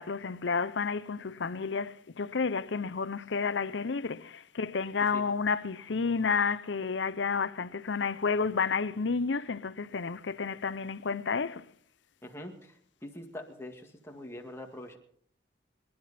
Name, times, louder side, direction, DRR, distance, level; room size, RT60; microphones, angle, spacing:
voice 1, 0.0-11.6, left 5 dB, 75° left, 0.7 m, -31 dB
voice 2, 12.2-12.7 13.0-15.0, left 1 dB, 15° left, 2.0 m, -43 dB
25.5 x 11.0 x 4.3 m
head